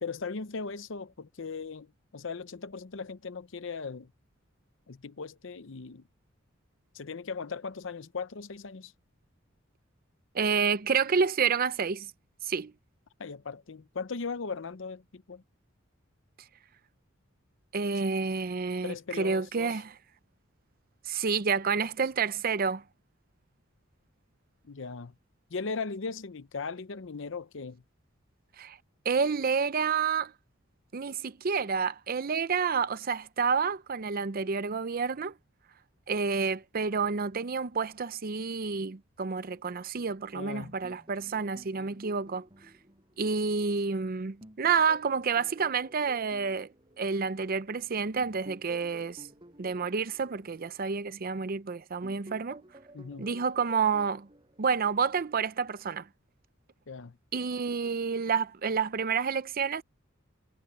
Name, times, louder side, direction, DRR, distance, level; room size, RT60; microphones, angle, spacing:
voice 1, 0.0-4.1 4.9-6.0 6.9-8.9 13.2-15.4 18.8-19.7 24.6-25.1 25.5-27.8 40.3-40.7 52.9-53.3 56.9-57.2, left 4 dB, 65° left, 0.7 m, -38 dB
voice 2, 10.3-12.1 12.4-12.7 17.7-19.9 21.1-22.8 28.6-28.8 29.0-30.3 30.9-35.3 36.1-42.4 43.2-46.7 47.0-49.3 49.6-52.6 53.2-54.3 54.6-56.1 57.3-59.8, right 5 dB, 45° right, 0.6 m, -29 dB
sound 1, 40.6-43.9 44.4-47.7 48.2-51.5 52.0-55.3, right 1 dB, 25° right, 7.5 m, -53 dB
head